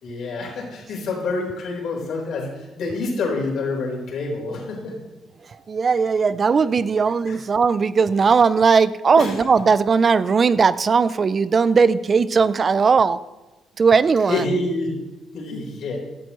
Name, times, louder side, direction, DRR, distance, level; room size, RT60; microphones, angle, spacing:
voice 1, 0.0-4.9 7.3-7.4 9.1-9.3 14.3-14.9 15.3-16.0, left 3 dB, 70° left, -1 dB, 4.3 m, -27 dB
voice 2, 5.5-13.2 13.8-14.4, right 5 dB, 40° right, 16 dB, 0.5 m, -18 dB
15.5 x 11.5 x 3.1 m, 1.1 s
cardioid pair, 90°, 0 cm